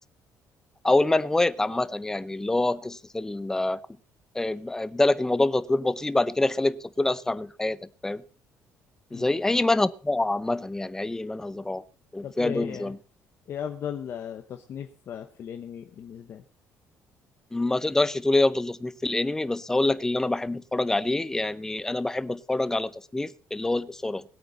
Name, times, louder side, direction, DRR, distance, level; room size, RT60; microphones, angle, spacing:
voice 1, 0.8-3.8 4.3-7.8 8.0-8.2 9.1-11.8 12.1-13.0 17.5-24.2, left 2 dB, 10° left, 0.6 m, -26 dB
voice 2, 12.2-12.9 13.5-16.4, left 8 dB, 45° left, 1.0 m, -36 dB
20.5 x 8.7 x 4.0 m
cardioid pair, 155°, 6 cm